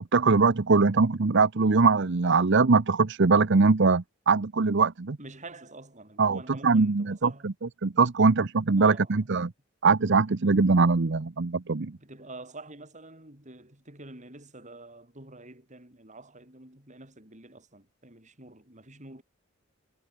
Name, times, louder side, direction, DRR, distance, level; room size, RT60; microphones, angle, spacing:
voice 1, 0.0-5.2 6.2-7.5 7.8-9.5 9.8-12.0, right 4 dB, 55° right, 0.8 m, -22 dB
voice 2, 5.2-7.5 8.8-9.3 11.8-19.2, right 2 dB, 35° right, 6.2 m, -47 dB
head